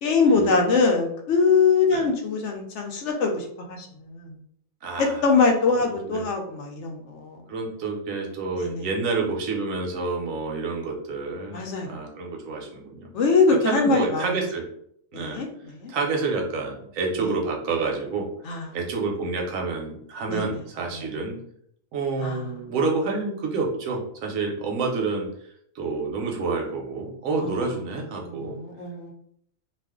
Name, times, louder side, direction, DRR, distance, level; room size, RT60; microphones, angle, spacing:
voice 1, 0.0-4.4 5.0-7.4 8.6-8.9 11.5-12.0 13.1-14.4 15.1-15.9 17.2-17.3 18.4-18.7 20.3-20.6 20.9-21.0 22.2-22.4 27.3-27.6 28.2-29.1, left 4 dB, 70° left, 3 dB, 0.8 m, -23 dB
voice 2, 4.8-5.2 5.8-6.2 7.5-13.1 13.6-14.6 15.1-15.4 15.9-18.3 18.7-21.4 21.9-25.3 25.7-28.6, right 4 dB, 85° right, 1 dB, 1.1 m, -28 dB
2.5 x 2.4 x 3.5 m, 0.68 s
omnidirectional pair, 1.4 m